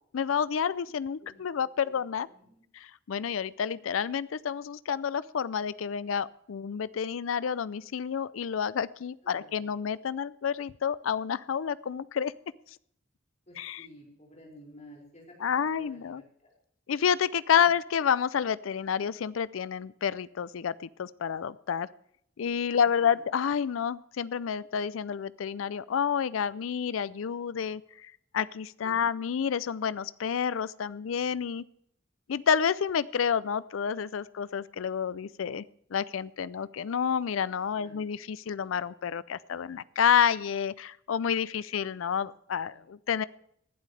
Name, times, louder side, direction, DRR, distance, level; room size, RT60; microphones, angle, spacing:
voice 1, 0.1-2.3 2.7-12.3 13.6-13.9 15.4-16.2 16.9-20.7 21.0-21.9 22.4-31.6 32.3-35.6 35.9-43.2, left 7 dB, 90° left, 19 dB, 0.4 m, -29 dB
voice 2, 1.2-2.6 9.2-9.7 13.5-16.5 17.6-17.7 22.7-23.2 28.8-29.1 37.7-38.0 42.7-42.8, left 1 dB, 35° left, -2 dB, 5.7 m, -53 dB
19.0 x 12.0 x 3.3 m, 0.69 s
head